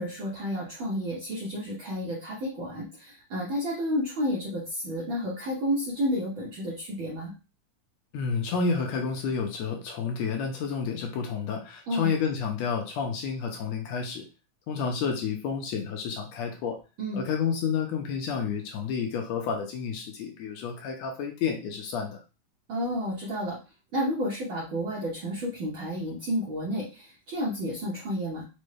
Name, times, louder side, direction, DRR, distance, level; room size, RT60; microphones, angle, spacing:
voice 1, 0.0-7.3 11.9-12.1 17.0-17.2 22.7-23.6 23.9-28.4, equal, 70° right, -5 dB, 1.1 m, -31 dB
voice 2, 8.1-14.2 14.7-16.8 17.1-22.2, left 6 dB, 80° left, 2 dB, 1.7 m, -30 dB
5.1 x 2.1 x 3.2 m, 0.31 s
omnidirectional pair, 3.4 m